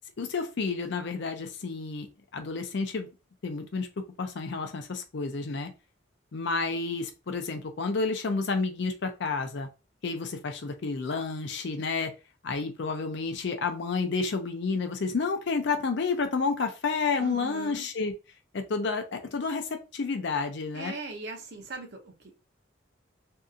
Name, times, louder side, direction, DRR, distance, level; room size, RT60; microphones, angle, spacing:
voice 1, 0.2-2.1 2.3-3.1 3.4-3.9 4.2-5.7 6.3-9.7 10.0-12.1 12.4-18.1 18.5-20.9, left 4 dB, 55° left, 0.5 m, -30 dB
voice 2, 17.2-17.9 20.7-22.3, right 3 dB, 55° right, 0.6 m, -40 dB
2.7 x 2.5 x 2.3 m
head